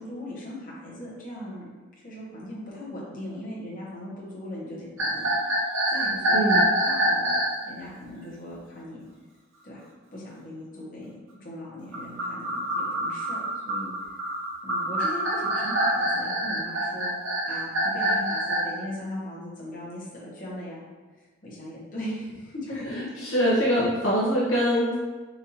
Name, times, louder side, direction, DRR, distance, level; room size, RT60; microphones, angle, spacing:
voice 1, 0.0-1.7 2.0-5.6 5.9-7.4 7.6-9.0 9.6-9.8 10.1-11.1 11.4-13.9 14.6-17.1 17.5-20.9 21.4-23.1, left 1 dB, 45° left, -7 dB, 1.0 m, -38 dB
sound 1, 5.0-7.6 11.9-18.6, right 1 dB, 70° right, 0.8 m, -25 dB
voice 2, 6.3-6.6 22.8-24.9, equal, 70° left, -7 dB, 0.8 m, -24 dB
4.1 x 2.6 x 2.8 m, 1.3 s
head